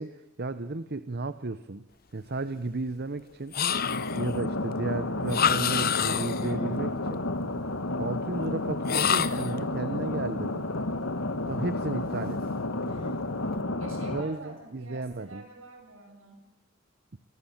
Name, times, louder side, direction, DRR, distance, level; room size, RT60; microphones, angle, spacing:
voice 1, 0.0-1.8 2.1-3.5 4.2-6.9 8.0-10.7 11.5-12.4 14.1-15.4, right 2 dB, 50° right, 12 dB, 0.8 m, -34 dB
sound 1, 3.5-4.3 5.3-6.5 8.8-9.6, left 8 dB, 45° left, 0.9 m, -27 dB
sound 2, 3.7-14.2, left 2 dB, 75° left, 1.8 m, -31 dB
voice 2, 6.4-6.8 12.0-12.3 12.9-13.3 13.8-16.5, right 2 dB, 70° right, 4 dB, 7.4 m, -46 dB
28.0 x 23.5 x 7.3 m, 1.1 s
head